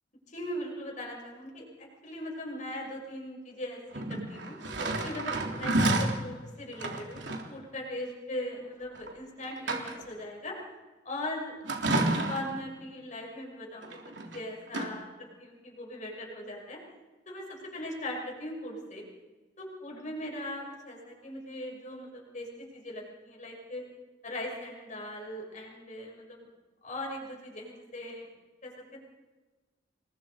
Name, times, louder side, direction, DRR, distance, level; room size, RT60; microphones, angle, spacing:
voice 1, 0.3-4.6 5.0-10.6 11.0-11.6 11.8-14.0 14.2-16.8 17.3-19.0 19.6-23.8 24.2-26.5 26.8-28.3 28.6-29.0, left 1 dB, 45° left, -1 dB, 6.7 m, -40 dB
sound 1, 3.9-6.2 6.7-7.5 9.0-9.1 9.4-10.2 11.6-12.6 13.8-14.4 14.7-14.9, right 2 dB, 75° right, 3.4 m, -30 dB
28.0 x 22.0 x 5.1 m, 1.2 s
head